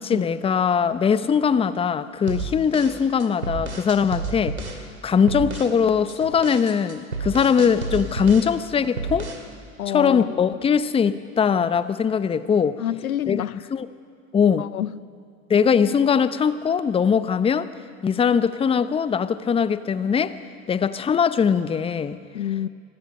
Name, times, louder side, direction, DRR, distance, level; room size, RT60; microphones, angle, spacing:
voice 1, 0.0-4.6 5.0-9.3 9.9-12.8 13.3-13.4 13.7-13.9 14.3-14.6 15.5-17.7 18.0-20.3 20.7-22.2, left 7 dB, 15° left, 14 dB, 0.7 m, -21 dB
sound 1, 2.3-4.8 5.3-5.8 6.1-8.6 9.0-9.5, right 4 dB, 90° right, 2.3 m, -31 dB
voice 2, 9.8-10.6 12.8-13.7 14.6-15.0 22.3-22.7, left 11 dB, 80° left, 19 dB, 0.6 m, -28 dB
26.5 x 21.0 x 5.4 m, 2.1 s
figure-of-eight pair, 85°, 42 cm